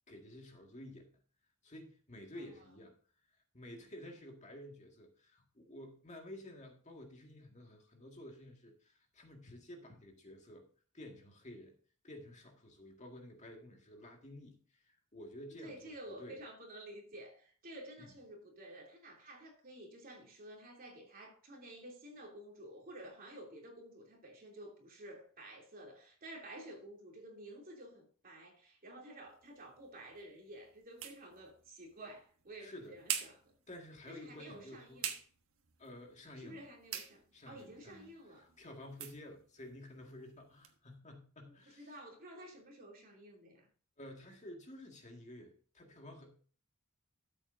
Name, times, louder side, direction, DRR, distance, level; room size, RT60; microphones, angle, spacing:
voice 1, 0.1-1.1 1.6-2.9 3.5-10.7 10.9-11.7 12.0-16.4 18.0-18.1 32.6-33.0 33.7-35.0 35.8-36.6 37.3-38.1 38.4-42.0 44.0-46.3, left 1 dB, 35° left, 1.9 m, -52 dB
voice 2, 15.6-33.4 34.1-35.1 36.4-38.5 41.5-43.7, right 1 dB, 40° right, 2.9 m, -52 dB
sound 1, 29.3-40.8, right 9 dB, 65° right, 1.3 m, -47 dB
13.0 x 7.8 x 2.6 m
head